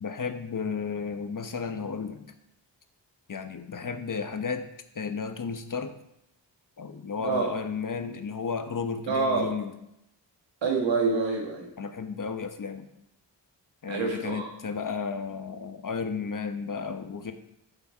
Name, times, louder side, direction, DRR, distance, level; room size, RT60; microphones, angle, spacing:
voice 1, 0.0-2.2 3.3-4.7 4.9-5.9 6.8-9.7 11.8-12.9 13.8-17.3, left 5 dB, 45° left, 8 dB, 1.0 m, -33 dB
voice 2, 7.2-7.5 9.1-9.5 10.6-11.7 13.9-14.5, right 4 dB, 85° right, 1 dB, 2.0 m, -27 dB
8.2 x 7.1 x 4.5 m, 0.82 s
cardioid pair, 40°, 44 cm